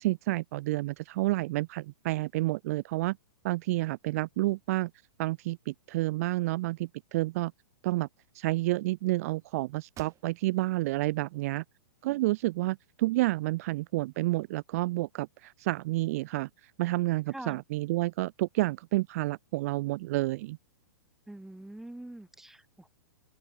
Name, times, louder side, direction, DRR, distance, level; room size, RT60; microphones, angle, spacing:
voice 1, 0.0-3.2 3.4-4.9 5.2-7.5 7.8-8.1 8.3-11.6 12.0-20.6, right 19 dB, 45° right, 0.5 m, -30 dB
sound 1, 9.9-10.7 11.2-11.3 11.8-12.7, right 13 dB, 25° right, 7.3 m, -53 dB
voice 2, 17.3-17.6 21.3-22.9, right 1 dB, 5° right, 2.6 m, -44 dB
open air
figure-of-eight pair, 110°, 11 cm